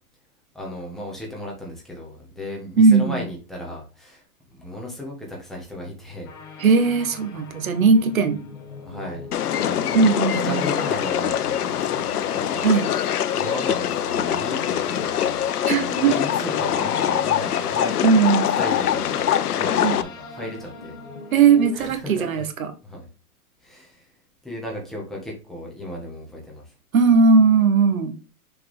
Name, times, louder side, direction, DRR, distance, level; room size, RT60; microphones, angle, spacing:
voice 1, 0.5-4.2 4.5-6.3 7.3-7.4 8.7-9.3 9.5-21.0 21.7-22.5 22.8-23.1 23.6-24.1 24.4-26.7, left 1 dB, ahead, -3 dB, 1.4 m, -35 dB
voice 2, 2.8-3.2 6.6-8.4 9.9-10.6 12.6-12.9 15.7-16.1 18.0-18.6 19.8-20.0 21.3-22.7 26.9-28.1, right 5 dB, 65° right, 8 dB, 1.9 m, -18 dB
sound 1, 6.2-21.9, left 4 dB, 15° left, 0.7 m, -39 dB
sound 2, 9.3-20.0, left 10 dB, 80° left, 0.9 m, -24 dB
6.8 x 4.9 x 3.6 m, 0.32 s
hypercardioid pair, 165°, 45 cm